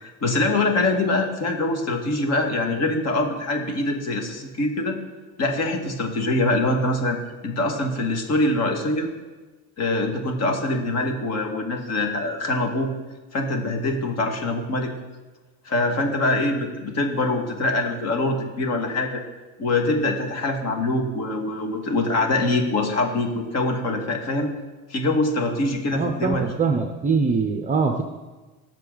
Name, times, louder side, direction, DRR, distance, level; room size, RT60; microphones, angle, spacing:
voice 1, 0.0-5.0 5.4-7.2 7.4-9.1 9.8-12.9 13.3-14.9 15.7-19.2 19.6-24.5 24.9-26.5, left 2 dB, 35° left, 3 dB, 2.0 m, -24 dB
voice 2, 25.9-28.0, right 4 dB, 15° right, 4 dB, 0.8 m, -23 dB
18.5 x 7.1 x 4.0 m, 1.2 s
supercardioid pair, 130°, 43 cm